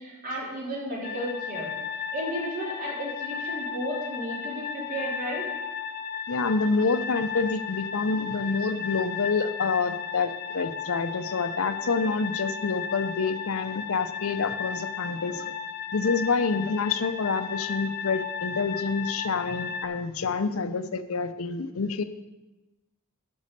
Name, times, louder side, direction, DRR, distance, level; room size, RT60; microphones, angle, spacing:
voice 1, 0.0-5.4 11.8-11.9, equal, 40° right, -4 dB, 3.5 m, -34 dB
sound 1, 1.0-19.8, left 6 dB, 45° left, 0.6 m, -35 dB
voice 2, 6.3-15.5 15.9-22.0, left 4 dB, 85° left, 11 dB, 0.7 m, -27 dB
10.5 x 6.2 x 6.7 m, 1.1 s
head